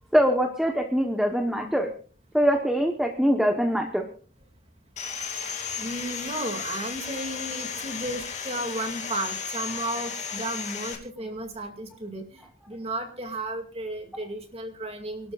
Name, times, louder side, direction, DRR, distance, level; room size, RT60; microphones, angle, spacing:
voice 1, 0.1-1.9 2.3-4.0, equal, ahead, 3 dB, 1.0 m, -23 dB
Sawing, 5.0-11.0, left 6 dB, 35° left, 2.6 m, -34 dB
voice 2, 5.8-15.3, right 1 dB, 30° right, 5 dB, 2.2 m, -34 dB
29.0 x 12.5 x 2.4 m, 0.40 s
head